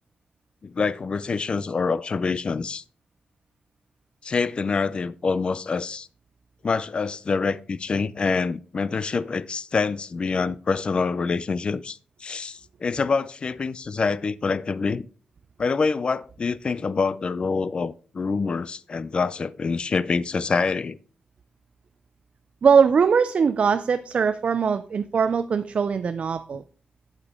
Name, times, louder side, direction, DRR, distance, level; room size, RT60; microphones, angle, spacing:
voice 1, 0.6-2.8 4.2-6.1 6.6-15.1 15.6-21.0, left 4 dB, 40° left, 0.4 m, -26 dB
voice 2, 22.6-26.6, right 6 dB, 50° right, 0.4 m, -21 dB
9.0 x 8.2 x 3.6 m
wide cardioid pair, 160°, 3 cm